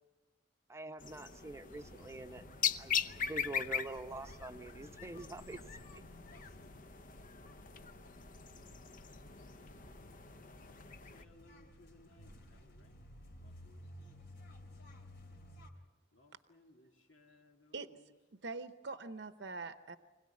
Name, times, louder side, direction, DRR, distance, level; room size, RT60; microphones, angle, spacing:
voice 1, 0.7-2.4 2.8-5.6 5.9-6.0, right 2 dB, 15° right, 0.8 m, -45 dB
sound 1, 1.0-11.2, left 7 dB, 45° left, 0.7 m, -41 dB
sound 2, 1.7-15.7, left 1 dB, 60° left, 2.9 m, -57 dB
voice 2, 11.1-12.9 13.4-13.8 16.1-18.1, left 2 dB, 85° left, 2.5 m, -64 dB
voice 3, 18.3-20.0, right 3 dB, 65° right, 0.8 m, -43 dB
25.5 x 17.0 x 9.6 m
head